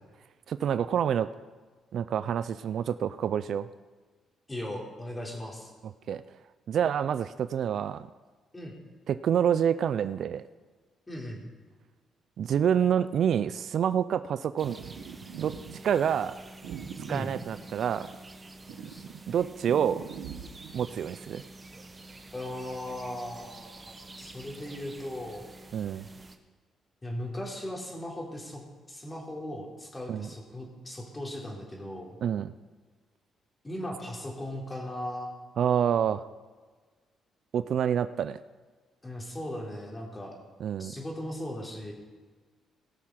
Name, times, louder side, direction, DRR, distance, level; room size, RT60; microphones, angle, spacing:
voice 1, 0.5-1.3 1.9-3.7 5.8-6.2 6.7-8.1 9.1-10.4 12.4-14.8 15.4-15.5 15.8-16.3 17.1-18.1 19.3-20.0 20.7-21.4 25.7-26.0 30.1-30.3 32.2-32.5 35.6-36.2 37.5-38.4 40.6-40.9, right 8 dB, 65° right, 14 dB, 0.4 m, -27 dB
voice 2, 4.5-5.7 8.5-8.7 11.1-11.4 17.1-17.3 18.9-19.0 22.3-25.5 27.0-28.6 28.9-32.2 33.6-35.3 39.0-40.4 40.8-41.9, left 1 dB, 20° left, -1 dB, 3.4 m, -38 dB
sound 1, 14.6-26.4, right 2 dB, 25° right, 1.2 m, -48 dB
sound 2, 14.6-15.8 16.6-18.2 18.7-20.9, right 8 dB, 85° right, 1.0 m, -42 dB
18.0 x 6.6 x 5.9 m, 1.4 s
cardioid pair, 90°, 0 cm